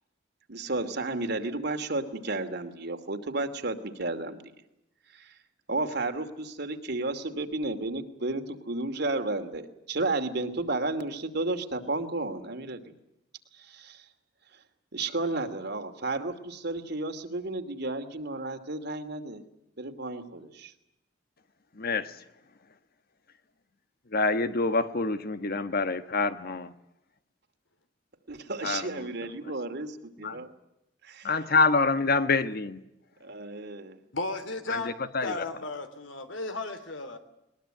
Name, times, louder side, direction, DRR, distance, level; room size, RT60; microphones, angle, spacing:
voice 1, 0.5-4.4 5.1-5.3 5.7-12.8 13.5-14.1 14.9-19.4 19.8-20.7 28.3-30.5 31.0-31.3 33.2-34.0, right 2 dB, 60° right, 2.7 m, -32 dB
voice 2, 21.7-22.2 24.1-26.7 28.6-29.1 30.2-30.4 31.2-32.8 34.7-35.4, left 3 dB, 55° left, 1.3 m, -26 dB
voice 3, 34.1-34.9 35.2-37.2, left 3 dB, 75° left, 3.1 m, -34 dB
21.5 x 21.5 x 9.2 m
head